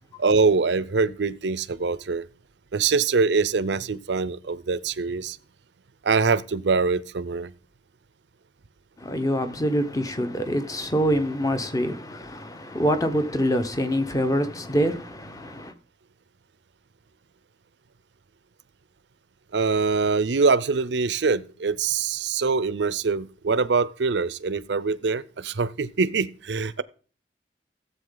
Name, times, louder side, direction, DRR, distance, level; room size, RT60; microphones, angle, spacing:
voice 1, 0.2-2.3 2.7-5.4 6.0-7.5 19.5-26.8, right 4 dB, 85° right, 0.6 m, -24 dB
voice 2, 9.0-15.7, equal, 20° left, 1.0 m, -25 dB
15.5 x 7.9 x 3.9 m
head